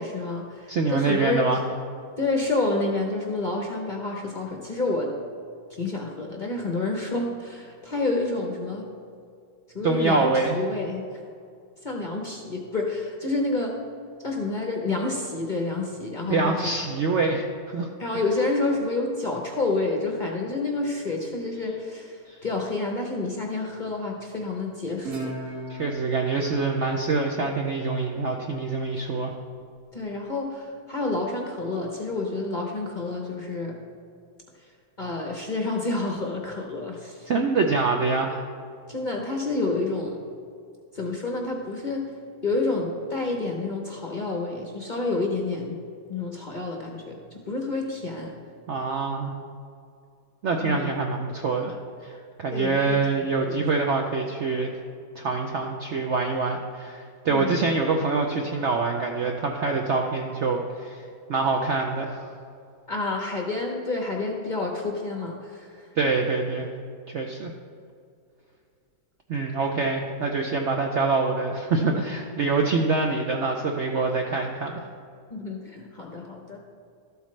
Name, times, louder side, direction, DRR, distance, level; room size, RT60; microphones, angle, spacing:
voice 1, 0.0-1.6 2.2-5.1 5.7-8.9 9.7-11.0 11.8-13.7 14.2-16.7 18.0-25.6 29.9-33.7 35.0-37.3 38.9-40.2 40.9-42.0 42.4-45.8 46.1-48.3 50.6-50.9 52.5-53.6 57.2-57.5 62.9-65.9 75.3-76.6, left 3 dB, 40° left, 0 dB, 0.7 m, -29 dB
voice 2, 0.7-1.6 9.8-10.6 16.2-17.9 22.3-22.4 25.7-29.3 37.2-38.4 48.7-49.3 50.4-51.8 52.0-54.7 55.2-61.0 61.3-62.3 66.0-66.7 67.1-67.5 69.3-74.8, right 3 dB, 65° right, 2 dB, 0.7 m, -25 dB
Guitar, 25.0-28.3, right 2 dB, 40° right, 1.9 m, -38 dB
12.5 x 8.0 x 3.2 m, 2.4 s
omnidirectional pair, 1.8 m